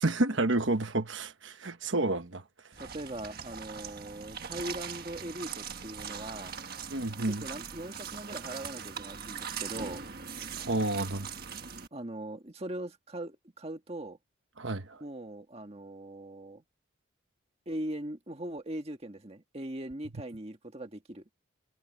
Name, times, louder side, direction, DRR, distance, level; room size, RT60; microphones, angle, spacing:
voice 1, 0.0-2.4 6.9-7.4 10.6-11.3 14.6-15.0, right 2 dB, 60° right, 1.2 m, -30 dB
sound 1, 2.7-11.9, right 6 dB, 45° right, 1.5 m, -41 dB
voice 2, 2.8-6.6 7.2-10.0 11.9-14.2 15.0-16.6 17.7-21.2, right 1 dB, 30° right, 1.7 m, -40 dB
head